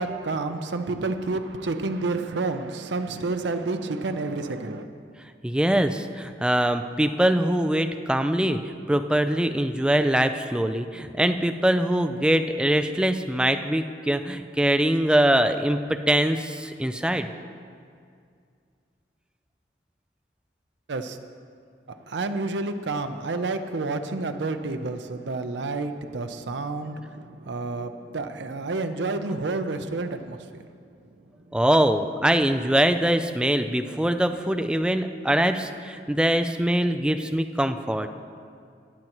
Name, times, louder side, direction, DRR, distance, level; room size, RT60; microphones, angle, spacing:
voice 1, 0.0-4.9 20.9-21.2 21.9-30.5, right 3 dB, 80° right, 8 dB, 0.6 m, -29 dB
voice 2, 5.4-17.3 31.5-38.1, right 1 dB, 5° right, 8 dB, 0.4 m, -23 dB
20.0 x 7.7 x 3.0 m, 2.3 s
head